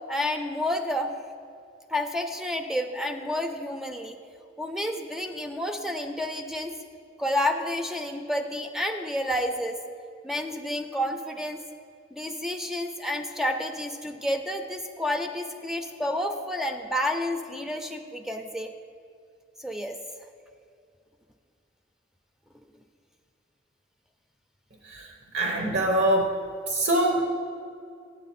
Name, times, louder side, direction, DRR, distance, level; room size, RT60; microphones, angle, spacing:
voice 1, 0.1-1.2 1.9-4.2 4.6-6.7 7.2-9.8 10.2-11.6 12.1-18.7 19.6-20.0, left 1 dB, ahead, 5 dB, 0.4 m, -30 dB
voice 2, 25.3-26.3 26.7-27.2, right 1 dB, 70° right, 1 dB, 0.8 m, -23 dB
8.4 x 7.7 x 4.2 m, 2.4 s
head